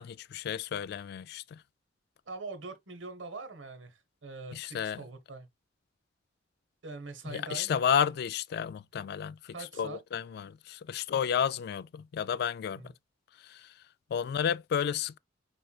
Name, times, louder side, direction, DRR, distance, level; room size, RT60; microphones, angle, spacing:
voice 1, 0.0-1.6 4.5-5.0 7.3-12.9 13.4-13.7 14.1-15.2, left 8 dB, 60° left, 0.3 m, -32 dB
voice 2, 2.3-5.5 6.8-7.9 9.5-10.0 12.8-12.9, right 3 dB, 90° right, 1.1 m, -43 dB
4.9 x 4.4 x 2.3 m
head